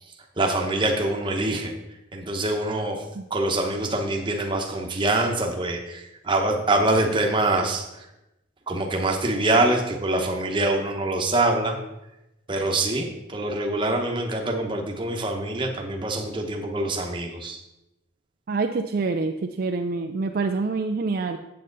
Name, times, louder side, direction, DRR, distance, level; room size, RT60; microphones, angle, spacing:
voice 1, 0.4-1.7 2.1-3.0 3.3-8.1 8.7-11.8 12.5-17.6, right 2 dB, 25° right, 2 dB, 1.0 m, -24 dB
voice 2, 18.5-21.4, right 3 dB, 50° right, 5 dB, 0.4 m, -26 dB
7.6 x 7.6 x 3.9 m, 0.91 s
head